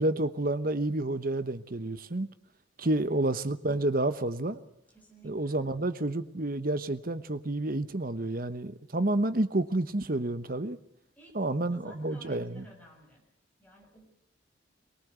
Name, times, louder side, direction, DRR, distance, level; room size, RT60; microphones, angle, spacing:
voice 1, 0.0-2.3 2.8-4.6 5.2-10.8 11.3-12.6, right 2 dB, 45° right, 12 dB, 1.1 m, -29 dB
voice 2, 2.8-3.2 4.9-5.6 11.2-13.2 13.6-14.1, equal, 10° left, -1 dB, 6.6 m, -53 dB
23.0 x 18.5 x 8.3 m, 0.74 s
head